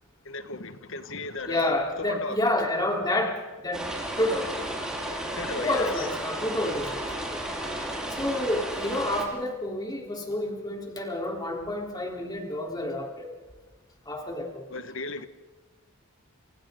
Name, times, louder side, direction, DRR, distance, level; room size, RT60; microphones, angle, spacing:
voice 1, 0.2-2.4 5.3-6.1 14.7-15.3, left 3 dB, 60° left, 1.5 m, -36 dB
voice 2, 1.5-3.9 4.2-4.5 5.5-7.0 7.3-7.4 8.1-13.3 14.1-14.7, left 1 dB, 20° left, 3.7 m, -29 dB
sound 1, 3.7-9.3, right 1 dB, 5° right, 5.5 m, -33 dB
29.5 x 28.0 x 3.9 m
head